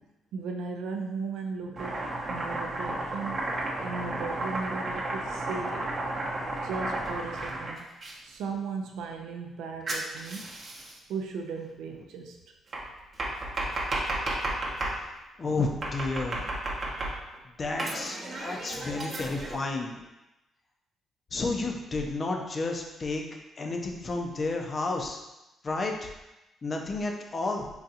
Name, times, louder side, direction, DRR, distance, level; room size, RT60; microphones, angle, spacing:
voice 1, 0.3-3.5 3.8-6.0 6.6-7.9 8.2-10.4 11.1-12.4, right 5 dB, 85° right, 2 dB, 0.3 m, -36 dB
Domestic sounds home sounds, 1.8-8.1 9.9-11.0 12.7-15.0 15.8-17.4 17.8-19.6, right 2 dB, 45° right, 0.7 m, -33 dB
voice 2, 15.4-16.5 17.6-20.0 21.3-23.2 23.6-25.2 25.6-26.1 26.6-27.7, left 3 dB, 40° left, 2 dB, 0.5 m, -31 dB
3.8 x 2.3 x 2.7 m, 0.98 s
cardioid pair, 90°, 0 cm